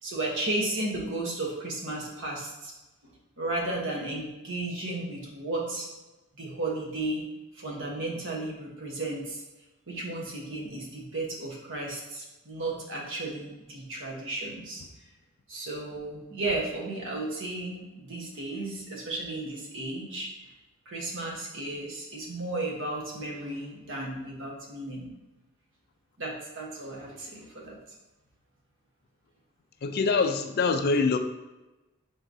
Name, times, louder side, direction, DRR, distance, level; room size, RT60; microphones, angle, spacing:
voice 1, 0.0-2.7 3.0-3.1 3.4-5.9 6.4-7.2 7.5-9.4 9.9-14.8 15.5-20.5 20.9-25.1 26.2-27.8, right 2 dB, 60° right, -1 dB, 1.0 m, -34 dB
voice 2, 29.8-31.2, left 4 dB, 45° left, 7 dB, 0.3 m, -24 dB
4.6 x 4.0 x 2.6 m, 1.1 s
head